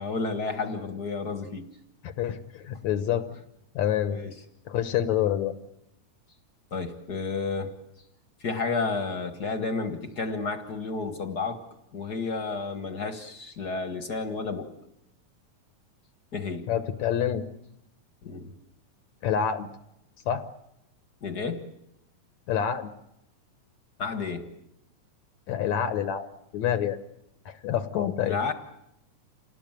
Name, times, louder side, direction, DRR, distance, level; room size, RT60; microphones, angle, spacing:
voice 1, 0.0-1.7 4.1-4.3 6.7-7.7 8.4-11.6 11.9-14.7 16.3-16.7 18.2-18.5 21.2-21.7 24.0-24.5 28.2-28.5, left 4 dB, 40° left, 8 dB, 1.6 m, -31 dB
voice 2, 2.0-3.3 3.8-4.2 4.7-5.5 16.7-17.4 19.2-19.7 20.3-20.4 22.5-22.9 25.5-26.3 26.5-27.0 27.5-28.4, left 9 dB, 70° left, 10 dB, 2.3 m, -27 dB
28.0 x 19.0 x 9.1 m, 0.82 s
omnidirectional pair, 3.5 m